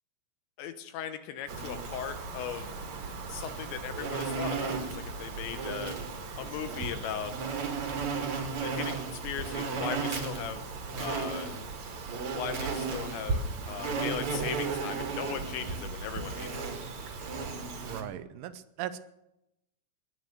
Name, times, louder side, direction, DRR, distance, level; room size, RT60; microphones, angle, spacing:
voice 1, 0.6-2.7 3.3-4.9 5.2-6.0 6.4-7.3 8.6-10.6 11.0-11.5 12.3-16.7, left 9 dB, 75° left, 9 dB, 2.9 m, -38 dB
Insect, 1.5-18.0, right 4 dB, 50° right, 2.6 m, -35 dB
voice 2, 17.8-19.0, right 11 dB, 80° right, 12 dB, 3.1 m, -38 dB
20.5 x 9.4 x 6.6 m, 0.86 s
omnidirectional pair, 5.7 m